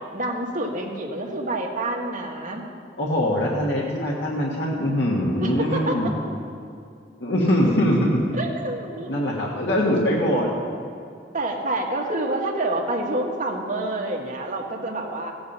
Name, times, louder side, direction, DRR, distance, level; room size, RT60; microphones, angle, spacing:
voice 1, 0.1-2.7 5.4-6.1 8.3-9.1 11.3-15.3, right 2 dB, 50° right, 0 dB, 1.7 m, -28 dB
voice 2, 3.0-6.1 7.2-8.2 9.1-10.5, equal, 90° left, -4 dB, 1.6 m, -22 dB
15.5 x 8.7 x 5.5 m, 2.4 s
head